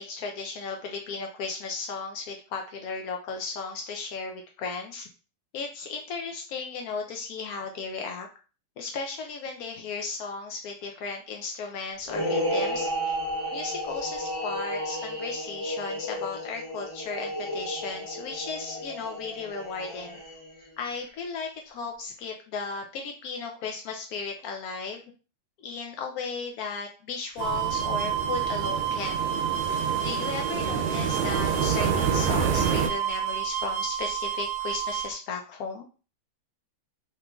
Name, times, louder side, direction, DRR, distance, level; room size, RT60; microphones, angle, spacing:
voice 1, 0.0-5.1 5.5-8.3 8.8-13.2 13.5-20.2 20.8-25.0 25.6-29.2 30.0-35.9, left 4 dB, 85° left, 2 dB, 0.8 m, -35 dB
sound 1, 12.1-20.6, equal, 20° left, 1.0 m, -32 dB
sound 2, 27.4-35.1, right 9 dB, 70° right, 1.1 m, -30 dB
sound 3, 27.4-32.9, right 6 dB, 90° right, 1.4 m, -28 dB
3.7 x 3.0 x 2.3 m, 0.35 s
omnidirectional pair, 2.1 m